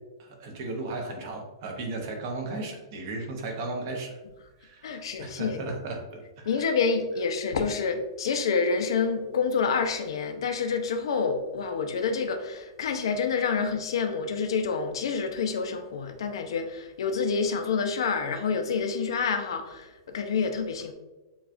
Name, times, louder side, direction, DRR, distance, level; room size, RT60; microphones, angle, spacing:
voice 1, 0.2-4.2 4.6-6.7, right 2 dB, 40° right, 2 dB, 0.8 m, -35 dB
voice 2, 4.8-5.7 6.5-20.9, left 5 dB, 75° left, 6 dB, 0.6 m, -28 dB
6.9 x 2.4 x 2.5 m, 1.1 s
supercardioid pair, 170°, 3 cm